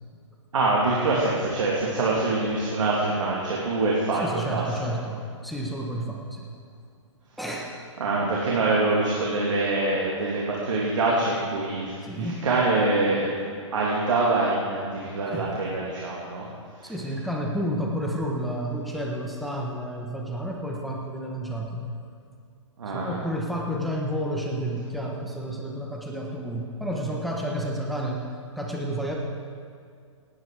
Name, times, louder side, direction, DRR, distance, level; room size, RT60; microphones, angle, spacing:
voice 1, 0.5-4.8 8.0-13.4 13.7-16.5 16.8-16.9 22.8-23.2, right 2 dB, 70° right, -5 dB, 2.8 m, -25 dB
voice 2, 4.1-6.5 7.4-7.7 12.0-12.5 15.3-15.5 16.8-22.0 22.9-28.3 28.6-29.2, equal, ahead, -2 dB, 1.3 m, -30 dB
18.0 x 9.4 x 4.9 m, 2.2 s
hypercardioid pair, 130°, 16 cm